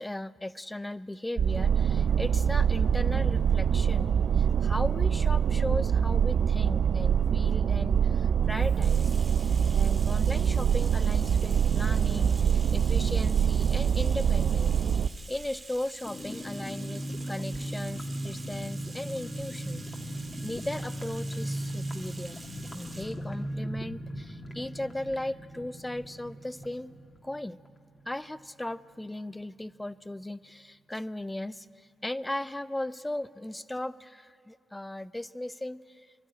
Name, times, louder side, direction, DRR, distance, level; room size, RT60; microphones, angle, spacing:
voice 1, 0.0-4.1 4.4-9.1 9.7-14.8 15.3-19.8 20.2-22.4 22.7-26.9 27.2-27.6 28.1-31.7 32.0-35.8, left 1 dB, 15° left, 16 dB, 0.6 m, -37 dB
sound 1, 1.4-15.1, right 8 dB, 60° right, 0.4 m, -24 dB
Bathtub (filling or washing), 8.5-23.2, right 3 dB, 35° right, 1.7 m, -48 dB
sound 2, 16.0-28.4 28.7-28.8 29.0-29.3, right 1 dB, 35° left, 2.6 m, -37 dB
24.0 x 12.0 x 9.8 m, 2.5 s
hypercardioid pair, 40°, 0 cm